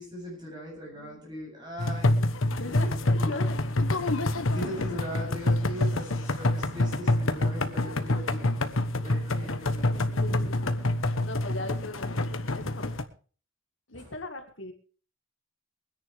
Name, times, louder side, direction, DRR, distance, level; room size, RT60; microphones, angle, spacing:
voice 1, 0.0-3.4 4.5-8.4 9.0-10.3 13.9-14.1, equal, 20° right, -2 dB, 7.9 m, -40 dB
sound 1, 1.8-13.0, left 2 dB, 85° left, 1.2 m, -27 dB
voice 2, 2.5-3.8 10.2-10.7 11.2-12.9 13.9-14.7, left 2 dB, 65° left, 5 dB, 2.0 m, -38 dB
23.0 x 10.5 x 3.5 m, 0.39 s
head